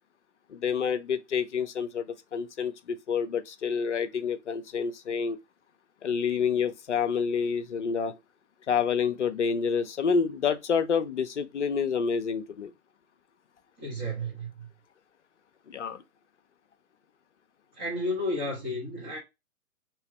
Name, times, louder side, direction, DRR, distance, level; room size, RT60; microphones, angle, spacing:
voice 1, 0.5-5.4 6.0-8.2 8.7-12.7 15.7-16.0, left 6 dB, 55° left, 0.7 m, -28 dB
voice 2, 13.8-14.7 17.7-19.2, left 1 dB, 15° right, 1.1 m, -32 dB
3.2 x 3.0 x 4.6 m
figure-of-eight pair, 130°, 44 cm